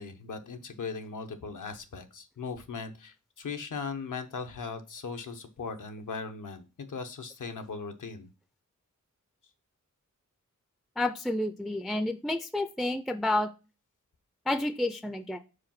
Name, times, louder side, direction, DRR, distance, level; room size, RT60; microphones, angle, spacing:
voice 1, 0.0-8.3, left 5 dB, 80° left, 6 dB, 1.0 m, -38 dB
voice 2, 11.0-13.5 14.5-15.4, left 1 dB, ahead, 10 dB, 0.4 m, -30 dB
5.0 x 4.7 x 5.7 m, 0.32 s
wide cardioid pair, 105°, 31 cm